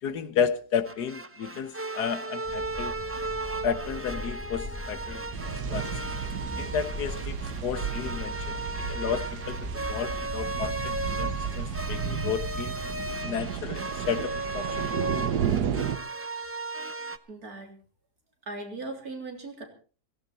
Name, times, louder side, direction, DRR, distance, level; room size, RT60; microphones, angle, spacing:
voice 1, 0.0-2.9 3.6-5.2 5.7-5.9 6.6-7.4 7.6-12.8 13.2-14.8, left 7 dB, 80° left, 1.7 m, -32 dB
sound 1, 0.8-17.2, right 2 dB, 20° right, 0.4 m, -36 dB
sound 2, 2.4-13.2, equal, 5° left, 2.1 m, -39 dB
sound 3, 5.3-16.0, right 8 dB, 85° right, 1.6 m, -33 dB
voice 2, 17.3-17.7 18.5-19.6, right 3 dB, 65° right, 3.9 m, -38 dB
17.0 x 17.0 x 4.3 m
omnidirectional pair, 1.7 m